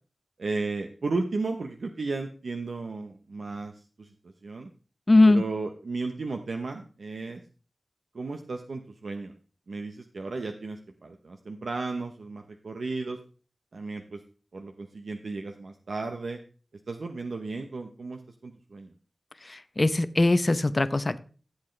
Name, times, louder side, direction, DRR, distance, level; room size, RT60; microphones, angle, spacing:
voice 1, 0.4-3.7 4.0-4.1 4.4-4.7 5.3-7.4 8.1-9.3 9.7-13.2 13.7-14.2 14.5-16.4 16.9-18.9, right 3 dB, 80° right, 5 dB, 0.9 m, -34 dB
voice 2, 5.1-5.4 19.8-21.2, left 2 dB, 35° left, 13 dB, 0.7 m, -20 dB
14.5 x 8.0 x 3.3 m, 0.38 s
wide cardioid pair, 95°, 0 cm